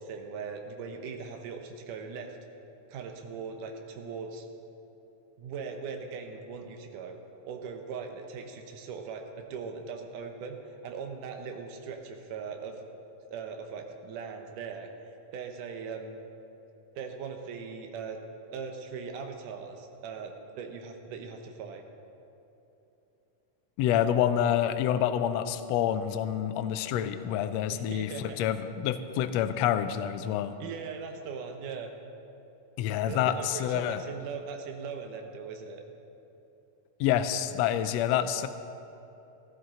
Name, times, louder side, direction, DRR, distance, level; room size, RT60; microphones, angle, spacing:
voice 1, 0.0-2.4 2.9-4.5 5.4-7.2 7.4-12.8 13.3-14.9 15.3-16.3 17.0-18.2 18.5-21.8 27.7-28.4 30.6-31.9 33.1-35.8, right 5 dB, 85° right, 4 dB, 2.5 m, -39 dB
voice 2, 23.8-30.5 32.8-34.0 37.0-38.5, left 10 dB, 85° left, 10 dB, 1.5 m, -27 dB
16.0 x 12.5 x 3.8 m, 2.9 s
omnidirectional pair, 3.6 m